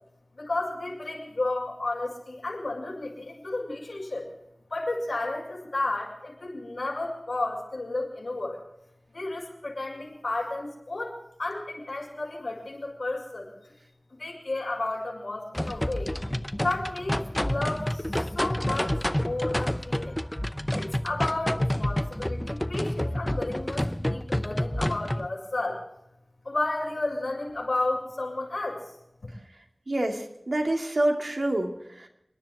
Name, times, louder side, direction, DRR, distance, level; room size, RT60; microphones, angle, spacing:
voice 1, 0.3-4.3 4.7-8.6 9.1-13.7 14.1-16.1 16.6-20.1 20.7-25.8 26.4-28.9 29.2-29.3, left 2 dB, 85° left, -4 dB, 5.5 m, -32 dB
sound 1, 15.5-25.3, left 1 dB, 15° left, 0.7 m, -29 dB
voice 2, 29.9-32.1, right 1 dB, 65° right, 2 dB, 2.4 m, -27 dB
29.5 x 10.5 x 3.6 m, 0.82 s
wide cardioid pair, 45°, 0 cm